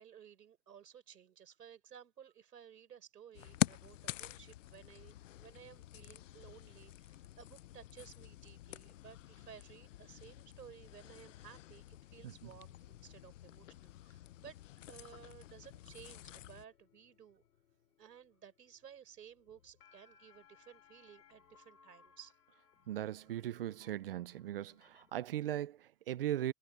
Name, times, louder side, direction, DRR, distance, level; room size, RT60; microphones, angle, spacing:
voice 1, 0.0-14.6 14.9-17.4 18.0-22.3, right 8 dB, 85° right, 5.2 m, -57 dB
sound 1, 3.3-16.7, left 14 dB, 55° left, 0.5 m, -45 dB
sound 2, 15.9-25.1, left 6 dB, 80° left, 4.7 m, -67 dB
voice 2, 22.9-26.5, right 12 dB, 40° right, 0.5 m, -39 dB
hypercardioid pair, 155°, 47 cm